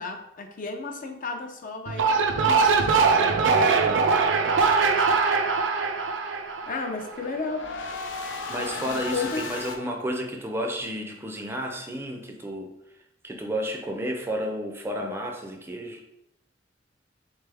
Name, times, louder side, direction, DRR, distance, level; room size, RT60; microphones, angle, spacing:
voice 1, 0.0-3.6 6.7-7.7 8.5-9.4, left 4 dB, 45° left, 4 dB, 0.5 m, -34 dB
sound 1, 1.9-7.2, right 4 dB, 85° right, 0.5 m, -22 dB
sound 2, 2.0-2.9 6.6-9.8, left 4 dB, 85° left, 0.6 m, -36 dB
voice 2, 8.5-12.7 13.2-16.0, equal, 15° right, 2 dB, 0.4 m, -32 dB
4.1 x 3.3 x 3.4 m, 0.82 s
head